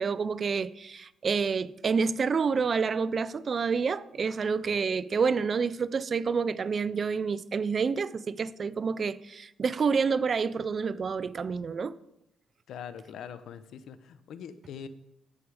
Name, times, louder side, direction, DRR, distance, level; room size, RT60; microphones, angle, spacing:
voice 1, 0.0-12.0, right 5 dB, 45° right, 0.4 m, -28 dB
voice 2, 12.7-14.9, left 8 dB, 75° left, 0.6 m, -42 dB
14.0 x 4.8 x 4.8 m
cardioid pair, 90°, 0 cm